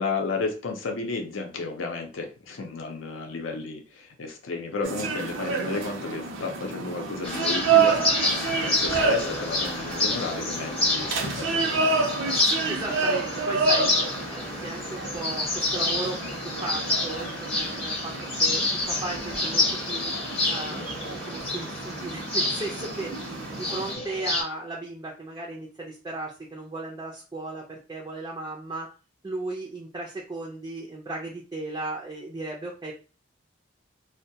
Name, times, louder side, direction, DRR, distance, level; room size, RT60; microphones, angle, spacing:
voice 1, 0.0-8.4 8.6-12.4, left 4 dB, 70° left, 2 dB, 0.5 m, -33 dB
sound 1, 4.8-23.9, right 5 dB, 75° right, 0.5 m, -29 dB
sound 2, 7.2-24.4, left 2 dB, 30° left, 0.8 m, -29 dB
voice 2, 12.7-13.9 14.3-20.2 20.5-23.1 23.6-28.9 29.2-32.9, right 2 dB, 20° right, -2 dB, 0.4 m, -36 dB
2.2 x 2.1 x 2.7 m, 0.34 s
head